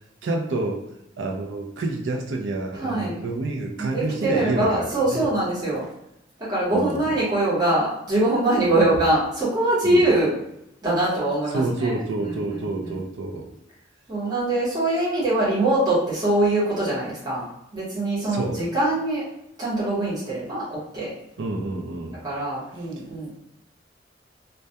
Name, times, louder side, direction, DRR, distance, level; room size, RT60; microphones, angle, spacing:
voice 1, 0.2-0.8 1.2-5.3 6.7-7.1 8.6-8.9 9.8-10.1 11.5-13.5 18.3-18.6 21.4-22.2, right 2 dB, 85° right, 2 dB, 0.4 m, -28 dB
voice 2, 2.8-3.2 3.8-5.8 6.5-10.3 10.8-11.9 12.6-13.0 14.1-17.4 17.7-19.2 19.6-20.6 20.9-21.1 22.2-23.4, right 1 dB, 20° right, -9 dB, 0.9 m, -23 dB
2.2 x 2.1 x 2.7 m, 0.82 s
head